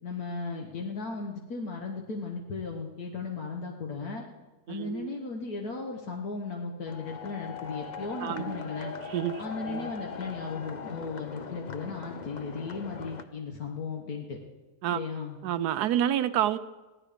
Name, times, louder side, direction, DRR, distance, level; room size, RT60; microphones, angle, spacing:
voice 1, 0.0-4.2 4.7-8.9 9.4-14.4 14.9-15.4, left 4 dB, 70° left, 1 dB, 1.7 m, -36 dB
voice 2, 4.7-5.1 8.2-8.6 9.1-9.9 14.8-15.0 15.4-16.6, right 11 dB, 80° right, 12 dB, 1.1 m, -29 dB
sound 1, 6.9-13.2, left 5 dB, 50° left, 0.5 m, -40 dB
16.5 x 12.0 x 5.0 m, 1.2 s
omnidirectional pair, 1.7 m